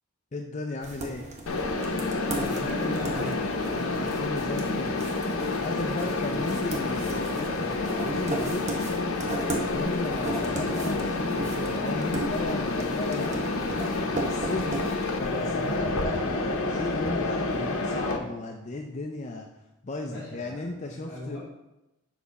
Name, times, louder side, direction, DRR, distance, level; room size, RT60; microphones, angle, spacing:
voice 1, 0.3-1.3 3.7-8.7 9.5-13.4 13.7-14.8 15.2-19.5 19.8-21.4, left 2 dB, 30° left, 3 dB, 0.4 m, -35 dB
sound 1, 0.8-15.6, right 2 dB, 30° right, 0.9 m, -37 dB
Mechanisms, 1.5-18.2, left 3 dB, 75° left, 0.8 m, -29 dB
voice 2, 2.2-3.4 20.0-21.4, equal, 15° left, -13 dB, 2.9 m, -38 dB
7.2 x 5.5 x 4.1 m, 0.94 s
head